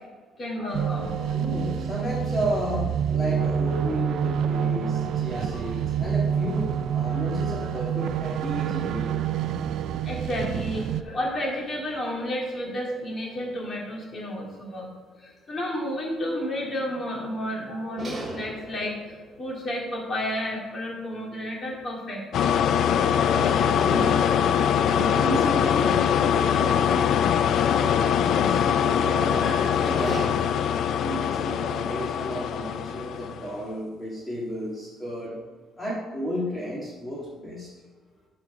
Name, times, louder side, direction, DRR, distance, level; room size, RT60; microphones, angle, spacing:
voice 1, 0.4-1.7 5.3-5.6 7.1-7.2 7.6-7.8 10.0-14.9 15.2-22.2, equal, 30° left, -2 dB, 2.5 m, -32 dB
sound 1, 0.7-11.0, right 8 dB, 60° right, 0.4 m, -27 dB
voice 2, 1.3-9.2 23.3-24.3 24.8-27.4 27.7-30.4 31.0-35.4 35.8-37.7, equal, 15° left, -6 dB, 1.8 m, -33 dB
sound 2, 11.1-14.6 15.1-15.2 18.0-20.3 22.5-27.3 28.1-30.3, right 1 dB, 15° right, 3.4 m, -39 dB
sound 3, 22.3-33.6, left 8 dB, 55° left, 0.3 m, -23 dB
12.0 x 4.9 x 5.0 m, 1.3 s
cardioid pair, 155°, 0 cm